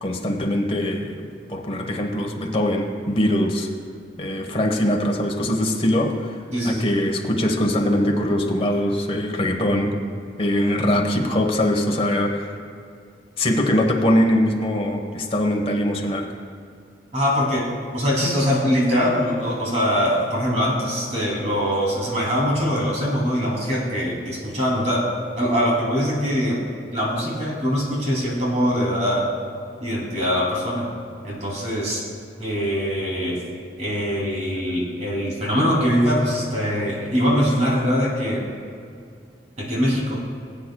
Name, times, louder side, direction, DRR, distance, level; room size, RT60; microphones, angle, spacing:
voice 1, 0.0-3.7 4.2-6.4 6.6-9.9 10.4-12.5 13.4-16.3, left 1 dB, 30° left, 1 dB, 1.2 m, -22 dB
voice 2, 6.5-6.9 17.1-25.1 25.4-26.6 26.9-29.3 29.8-30.9 31.2-32.1 32.4-33.4 33.8-38.4 39.6-40.2, equal, 40° right, -4 dB, 2.9 m, -22 dB
20.5 x 8.9 x 2.3 m, 2.4 s
head